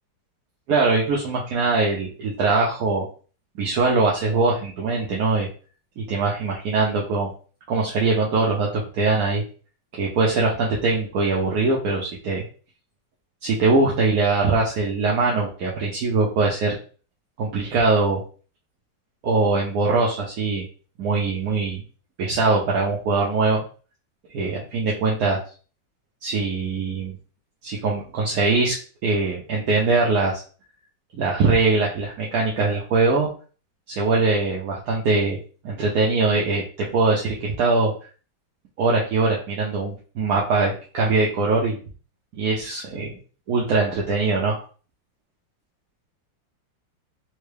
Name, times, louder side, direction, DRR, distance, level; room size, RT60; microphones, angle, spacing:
voice 1, 0.7-3.1 3.6-5.5 6.0-7.3 7.7-9.4 9.9-12.4 13.4-16.7 17.4-18.2 19.2-20.6 21.0-21.8 22.2-23.6 24.3-25.4 26.2-27.1 27.6-28.8 29.0-30.4 31.1-33.3 33.9-35.4 35.6-37.9 38.8-41.8 42.4-43.2 43.5-44.6, right 3 dB, 65° right, -3 dB, 1.0 m, -22 dB
4.4 x 2.2 x 3.3 m, 0.39 s
omnidirectional pair, 2.0 m